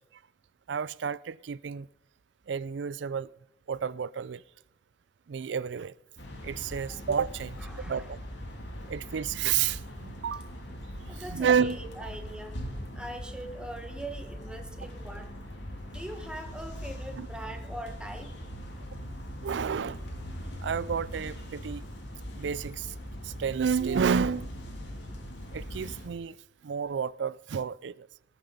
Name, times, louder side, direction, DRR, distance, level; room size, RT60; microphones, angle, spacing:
voice 1, 0.7-1.9 2.5-3.3 3.7-4.4 5.3-5.9 6.4-7.6 7.9-8.2 8.9-10.5 11.2-12.1 17.2-17.3 19.4-20.0 20.6-21.8 22.4-22.9 23.2-24.5 25.5-26.4 26.6-28.1, right 7 dB, 80° right, 0.4 m, -30 dB
sound 1, 6.2-26.1, equal, 80° left, 2.8 m, -41 dB
voice 2, 7.6-8.1 11.1-12.6 12.9-15.3 15.9-18.3, right 1 dB, 5° right, 1.4 m, -42 dB
18.5 x 7.4 x 5.3 m
head